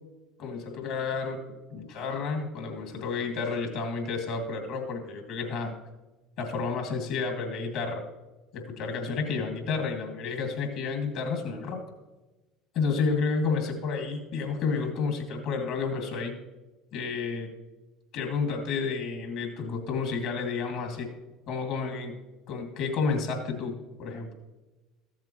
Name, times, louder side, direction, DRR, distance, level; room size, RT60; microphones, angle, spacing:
voice 1, 0.4-1.4 1.7-5.7 6.4-8.0 8.5-11.8 12.7-16.3 16.9-17.5 18.1-21.1 21.5-22.1 22.5-23.7 24.0-24.3, left 4 dB, 65° left, 3 dB, 2.2 m, -30 dB
14.5 x 7.5 x 3.0 m, 1.1 s
hypercardioid pair, 75°, 0 cm